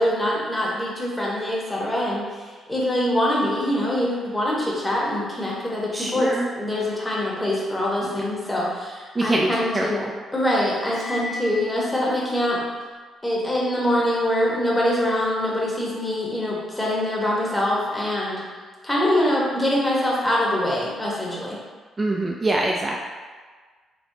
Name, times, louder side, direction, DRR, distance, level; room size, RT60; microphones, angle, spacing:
voice 1, 0.0-2.2 2.7-6.3 6.6-10.0 10.3-12.6 13.2-18.4 18.8-21.6, left 1 dB, 15° left, -5 dB, 0.9 m, -24 dB
voice 2, 5.9-6.5 8.0-8.2 9.1-10.1 22.0-23.0, right 2 dB, 25° right, -2 dB, 0.3 m, -25 dB
Cymbal, 10.8-12.3, left 2 dB, 50° right, 0.7 m, -35 dB
3.3 x 2.9 x 2.7 m, 1.5 s
cardioid pair, 90°, 0 cm